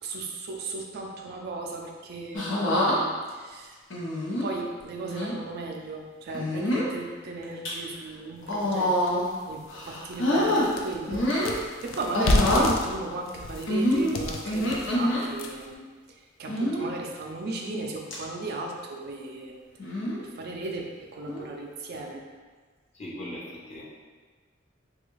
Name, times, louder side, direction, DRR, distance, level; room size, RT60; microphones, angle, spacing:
voice 1, 0.0-3.8 4.1-11.3 11.8-19.5 20.2-22.2, right 3 dB, 55° right, 0 dB, 0.4 m, -36 dB
sound 1, 2.3-3.0 3.9-4.5 5.0-5.3 6.3-6.9 7.4-7.7 8.4-9.4 9.7-10.7 11.1-11.6 12.1-12.7 13.7-15.2 16.5-16.9 17.5-17.8 18.1-18.2 19.8-20.2 21.3-21.5, left 1 dB, 65° left, 0.7 m, -26 dB
sound 2, 8.6-8.7 9.2-9.3 9.7-15.7, left 2 dB, 85° left, 0.4 m, -30 dB
voice 2, 22.9-23.8, left 1 dB, 35° left, -6 dB, 0.8 m, -40 dB
3.3 x 2.3 x 3.1 m, 1.5 s
head